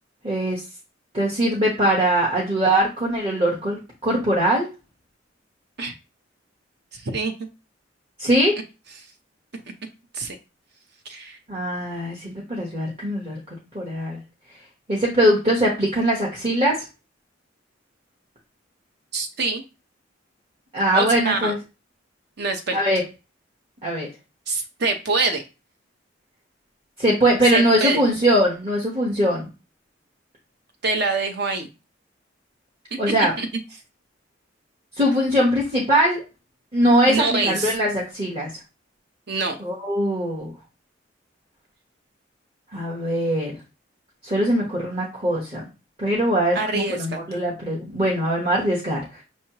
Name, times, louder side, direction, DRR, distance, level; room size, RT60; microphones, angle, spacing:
voice 1, 0.2-0.6 1.1-4.7 8.2-8.5 11.5-13.4 13.7-14.2 14.9-16.8 20.7-21.6 22.7-23.0 23.8-24.1 27.0-29.5 33.0-33.3 35.0-36.2 36.7-38.5 39.6-40.5 42.7-43.5 44.2-45.6 46.0-49.0, right 1 dB, 35° right, -3 dB, 1.1 m, -21 dB
voice 2, 6.9-7.3 10.1-10.4 11.1-11.4 19.1-19.6 20.9-21.5 22.4-22.8 24.5-25.4 27.5-28.0 30.8-31.7 33.4-33.5 37.1-37.7 39.3-39.6 46.5-47.2, right 3 dB, 60° right, 6 dB, 0.8 m, -25 dB
5.5 x 3.1 x 2.9 m, 0.29 s
head